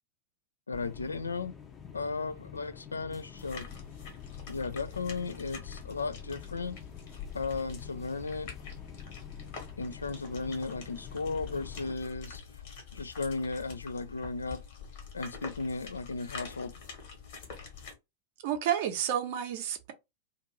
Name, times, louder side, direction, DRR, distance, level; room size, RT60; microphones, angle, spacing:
voice 1, 0.7-1.6 1.9-3.7 4.5-6.8 7.3-8.5 9.8-12.4 12.9-14.6 15.1-16.8, left 3 dB, 75° left, 0.3 m, -35 dB
sound 1, 0.7-11.9, left 6 dB, 20° left, 0.6 m, -49 dB
sound 2, 3.3-17.9, left 6 dB, 50° left, 1.2 m, -45 dB
voice 2, 18.4-19.9, right 10 dB, 50° right, 0.7 m, -30 dB
2.5 x 2.5 x 2.9 m
figure-of-eight pair, 90°, 0 cm